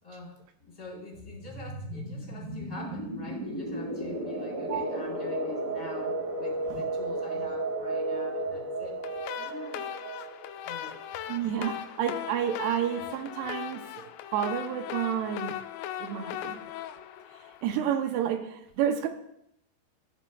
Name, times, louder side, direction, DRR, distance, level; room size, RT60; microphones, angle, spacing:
voice 1, 0.0-9.0 9.3-9.9 10.6-11.0, left 3 dB, 5° left, -4 dB, 3.1 m, -44 dB
sound 1, 1.1-11.6, right 2 dB, 55° right, 1.0 m, -34 dB
sound 2, 9.0-18.1, left 11 dB, 85° left, 2.6 m, -39 dB
voice 2, 11.3-15.5 16.0-16.6 17.6-19.1, right 9 dB, 80° right, 6 dB, 2.7 m, -30 dB
13.5 x 7.3 x 2.3 m, 0.76 s
omnidirectional pair, 4.9 m